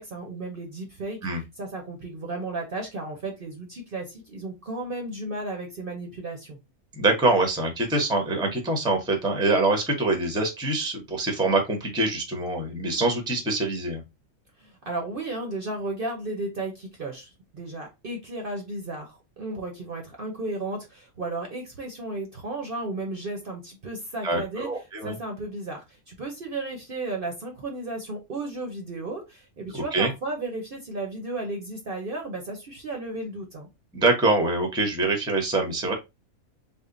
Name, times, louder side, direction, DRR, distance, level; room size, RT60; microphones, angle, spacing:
voice 1, 0.0-1.2 1.6-6.6 14.6-24.7 25.0-33.7, right 2 dB, 45° right, 2 dB, 0.9 m, -34 dB
voice 2, 6.9-14.0 24.2-25.1 29.7-30.1 33.9-35.9, right 2 dB, 5° right, 2 dB, 0.7 m, -24 dB
3.6 x 2.1 x 3.7 m, 0.23 s
omnidirectional pair, 1.5 m